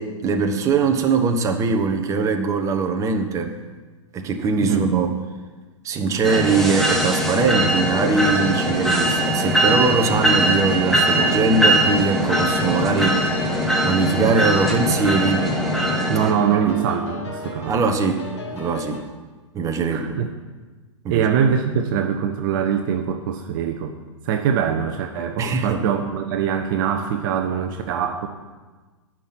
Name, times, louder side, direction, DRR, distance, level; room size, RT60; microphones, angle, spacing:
voice 1, 0.0-3.5 4.1-5.1 5.8-15.5 16.7-16.8 17.7-19.0 19.5-20.1 21.0-21.3 25.4-25.8, right 4 dB, 20° right, 4 dB, 1.2 m, -22 dB
sound 1, 6.2-16.3, right 1 dB, ahead, 1.5 m, -21 dB
sound 2, 7.3-19.0, left 3 dB, 60° left, 2.4 m, -35 dB
voice 2, 16.1-17.8 19.9-20.3 21.1-23.9 24.2-28.3, right 8 dB, 40° right, 5 dB, 0.9 m, -23 dB
10.5 x 6.1 x 8.8 m, 1.3 s
figure-of-eight pair, 105°, 16 cm